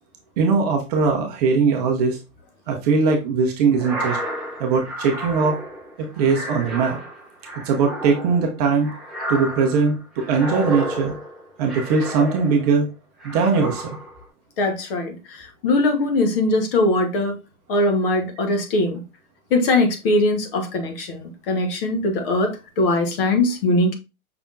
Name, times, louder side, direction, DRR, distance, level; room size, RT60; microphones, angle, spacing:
voice 1, 0.4-2.2 2.7-4.2 4.6-5.6 6.0-7.0 7.6-8.9 9.3-11.1 11.6-12.9 13.2-14.0, right 5 dB, 25° right, 0.8 m, -20 dB
sound 1, 3.7-12.8 13.2-14.2, right 1 dB, ahead, 0.5 m, -32 dB
voice 2, 14.6-17.3 17.7-19.0 19.5-23.9, left 2 dB, 40° left, 1.3 m, -21 dB
5.8 x 3.5 x 2.5 m
hypercardioid pair, 140°, 45 cm